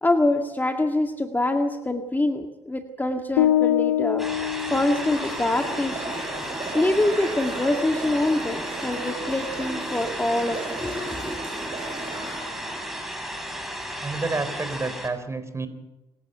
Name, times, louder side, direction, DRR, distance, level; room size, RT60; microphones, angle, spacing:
voice 1, 0.0-4.3 4.7-6.2 6.7-11.4, left 2 dB, 15° left, 5 dB, 2.0 m, -25 dB
sound 1, 3.4-5.6, left 12 dB, 75° left, 0.8 m, -24 dB
sound 2, 4.2-15.1, equal, ahead, 6.3 m, -34 dB
sound 3, 4.3-13.0, right 2 dB, 40° right, 7.7 m, -36 dB
voice 2, 14.0-15.7, right 3 dB, 20° right, 11 dB, 3.9 m, -29 dB
27.0 x 15.5 x 7.9 m, 0.97 s
figure-of-eight pair, 55°, 14 cm